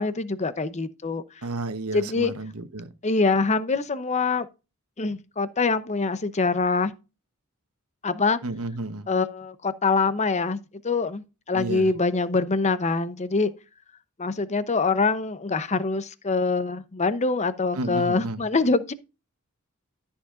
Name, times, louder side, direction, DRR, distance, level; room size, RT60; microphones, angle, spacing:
voice 1, 0.0-1.2 1.9-2.3 3.0-4.5 5.0-6.9 8.0-8.4 9.1-10.6 10.8-13.5 14.2-18.9, left 4 dB, 30° left, 0.7 m, -24 dB
voice 2, 1.4-2.9 8.4-9.1 11.5-11.9 17.7-18.4, right 2 dB, 85° right, 1.1 m, -32 dB
13.5 x 7.1 x 2.5 m
head